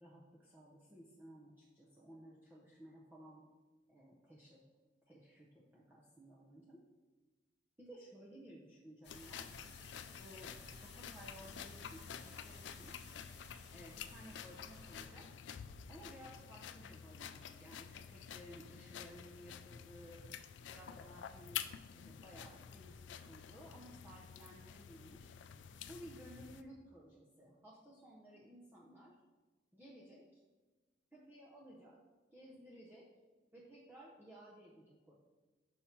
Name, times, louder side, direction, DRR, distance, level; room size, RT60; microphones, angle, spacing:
voice 1, 0.0-3.5 3.9-4.6 5.1-6.9 7.8-9.5 10.1-13.0 13.7-15.3 15.9-20.4 20.7-21.6 21.9-25.3 25.9-29.2 29.7-30.4 31.1-32.0 32.3-33.1 33.5-35.1, equal, 10° right, -5 dB, 0.7 m, -57 dB
sound 1, 9.0-15.0, left 4 dB, 70° left, 1.1 m, -56 dB
sound 2, 9.1-26.6, left 8 dB, 85° left, 0.4 m, -50 dB
5.7 x 5.3 x 4.5 m, 1.3 s
head